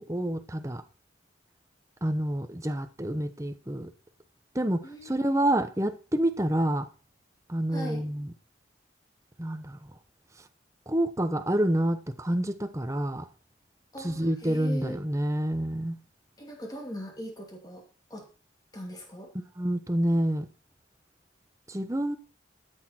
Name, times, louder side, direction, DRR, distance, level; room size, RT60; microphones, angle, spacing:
voice 1, 0.1-0.8 2.0-3.9 4.5-6.9 7.5-8.3 9.4-9.8 10.9-13.3 14.0-16.0 19.6-20.5 21.7-22.2, right 1 dB, 15° right, 0.8 m, -28 dB
voice 2, 4.8-5.5 7.7-8.0 13.9-15.0 16.4-17.8 18.1-18.2 18.7-19.3, equal, 20° left, 2.6 m, -40 dB
13.0 x 8.1 x 4.4 m
head